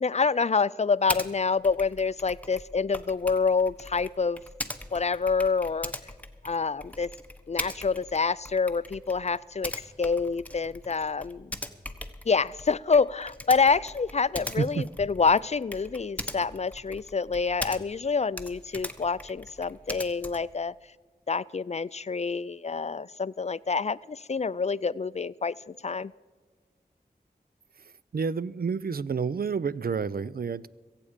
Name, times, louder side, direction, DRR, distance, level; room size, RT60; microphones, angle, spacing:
voice 1, 0.0-4.4 4.9-5.9 6.4-7.1 7.5-9.7 10.0-11.5 12.3-20.7 21.3-26.1, left 5 dB, 40° left, 0.4 m, -27 dB
Typing, 1.1-1.3 1.6-18.1 18.3-20.6, left 1 dB, 10° left, 1.1 m, -40 dB
voice 2, 28.1-30.7, right 5 dB, 65° right, 0.5 m, -29 dB
22.5 x 8.5 x 5.1 m
wide cardioid pair, 45°, 17 cm